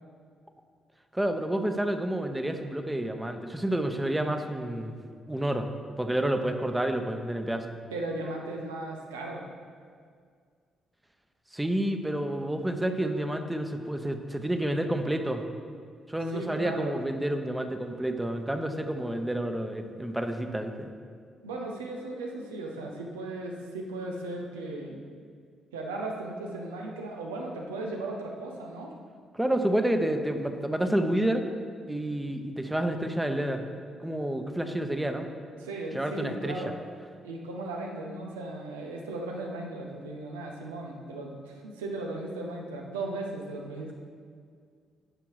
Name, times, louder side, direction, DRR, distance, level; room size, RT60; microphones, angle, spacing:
voice 1, 1.1-4.9 5.3-5.7 6.0-7.7 11.5-15.4 16.1-20.9 29.3-31.4 31.9-33.7 34.0-35.3 35.9-36.5, right 1 dB, 10° right, 6 dB, 1.0 m, -29 dB
voice 2, 7.9-9.4 16.3-17.0 21.4-25.0 25.7-28.9 35.6-36.7 37.2-43.9, right 2 dB, 90° right, 0 dB, 0.9 m, -36 dB
10.0 x 5.9 x 4.8 m, 2.1 s
hypercardioid pair, 45°, 0 cm